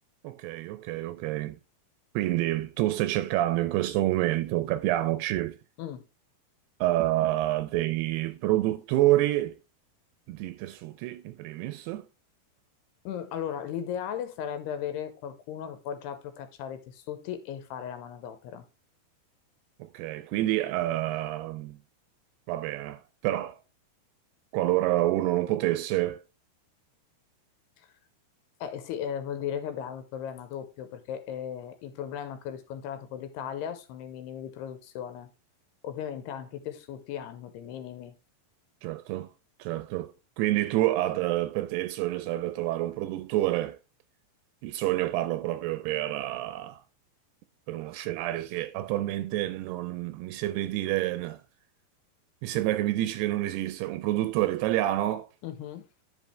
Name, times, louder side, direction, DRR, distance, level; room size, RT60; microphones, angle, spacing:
voice 1, 0.2-1.6 2.2-5.6 6.8-9.6 10.3-12.1 19.8-21.8 22.5-23.6 24.5-26.2 38.8-39.3 39.6-43.8 44.6-46.8 47.7-51.4 52.4-55.3, right 15 dB, 85° right, 2.5 m, -28 dB
voice 2, 13.0-18.7 27.8-27.9 28.6-35.3 35.8-38.1 55.4-55.9, left 9 dB, 85° left, 2.9 m, -36 dB
10.5 x 5.3 x 3.2 m
omnidirectional pair, 4.7 m